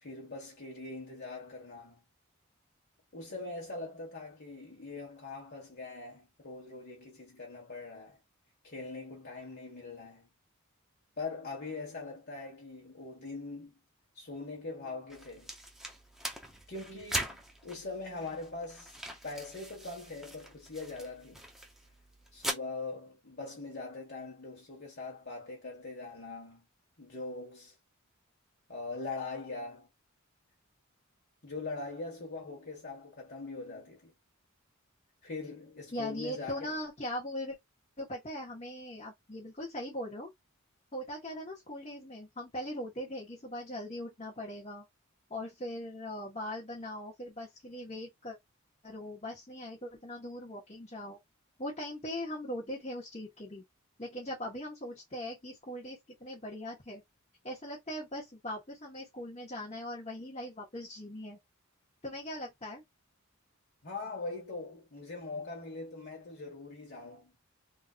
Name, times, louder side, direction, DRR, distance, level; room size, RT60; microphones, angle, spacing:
voice 1, 0.0-2.0 3.1-8.2 8.6-10.3 11.2-13.7 14.1-15.5 16.7-19.0 19.2-21.4 22.3-26.6 27.0-27.7 28.7-29.9 31.4-34.1 35.2-36.8 63.8-67.3, left 3 dB, 50° left, 1.5 m, -42 dB
sound 1, 15.1-22.5, right 1 dB, ahead, 0.7 m, -41 dB
voice 2, 35.9-37.6 38.0-40.3 40.9-44.9 45.3-48.4 48.8-51.2 51.6-53.6 54.0-57.0 57.4-61.4 62.0-62.8, left 1 dB, 30° left, 1.2 m, -40 dB
3.7 x 2.7 x 2.4 m
head